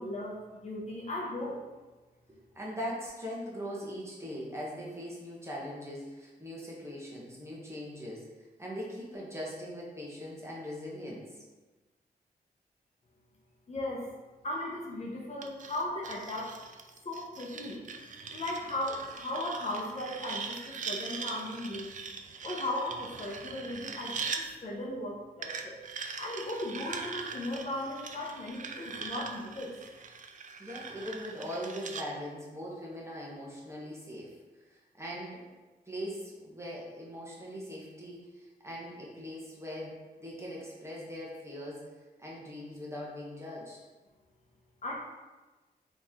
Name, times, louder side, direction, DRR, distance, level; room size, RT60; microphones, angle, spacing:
voice 1, 0.0-1.6 13.7-14.1 14.4-16.6 17.0-17.8 18.3-25.8 26.2-29.7 44.8-44.9, left 1 dB, 45° left, -3 dB, 0.8 m, -37 dB
voice 2, 2.3-8.2 8.6-11.4 30.6-35.5 35.9-41.9 42.2-43.8, equal, 15° right, -5 dB, 1.1 m, -41 dB
sound 1, 15.4-24.4 25.4-32.1, right 5 dB, 50° right, 0.4 m, -41 dB
4.0 x 3.1 x 3.6 m, 1.2 s
wide cardioid pair, 100°, 17 cm